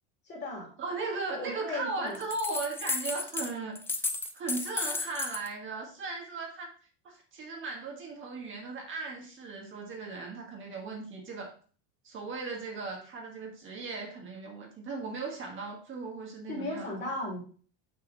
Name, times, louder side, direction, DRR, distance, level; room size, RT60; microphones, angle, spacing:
voice 1, 0.2-0.7 1.3-2.2 16.5-17.4, left 1 dB, 30° left, 0 dB, 2.7 m, -36 dB
voice 2, 0.8-6.7 7.0-11.5 12.0-16.9, right 3 dB, 35° right, 0 dB, 1.7 m, -37 dB
sound 1, 2.1-3.5 3.8-5.5, left 3 dB, 5° left, 0.3 m, -33 dB
5.9 x 5.4 x 3.9 m, 0.41 s
supercardioid pair, 135°, 36 cm